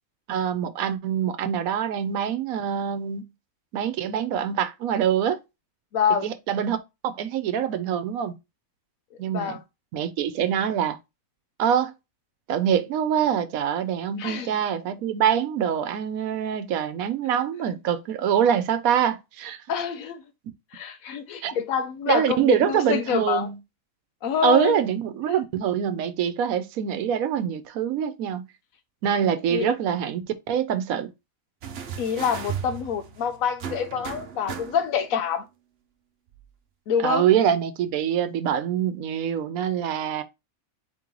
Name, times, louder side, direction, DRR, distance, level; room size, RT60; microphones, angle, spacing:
voice 1, 0.3-3.3 3.7-5.4 6.2-6.8 7.0-8.4 9.2-9.6 9.9-11.0 11.6-11.9 12.5-19.6 21.4-21.5 22.1-23.6 24.4-28.4 29.0-31.1 37.0-40.2, right 9 dB, 85° right, 1.0 m, -24 dB
voice 2, 5.9-6.3 9.3-9.6 14.2-14.5 19.7-20.2 20.7-23.5 24.2-24.8 29.5-29.7 32.0-35.4 36.9-37.2, left 7 dB, 75° left, 1.0 m, -26 dB
sound 1, 31.6-35.1 36.3-36.4, right 8 dB, 55° right, 0.7 m, -36 dB
4.3 x 3.0 x 3.6 m
omnidirectional pair, 1.5 m